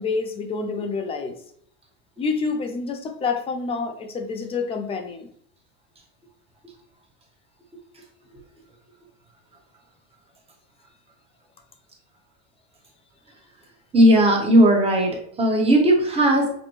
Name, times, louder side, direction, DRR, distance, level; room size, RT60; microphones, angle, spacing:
voice 1, 0.0-1.4 2.2-5.3, left 4 dB, 15° left, 5 dB, 0.4 m, -28 dB
voice 2, 13.9-16.5, right 1 dB, 15° right, 0 dB, 1.0 m, -17 dB
5.9 x 2.2 x 3.1 m, 0.63 s
supercardioid pair, 135°, 40 cm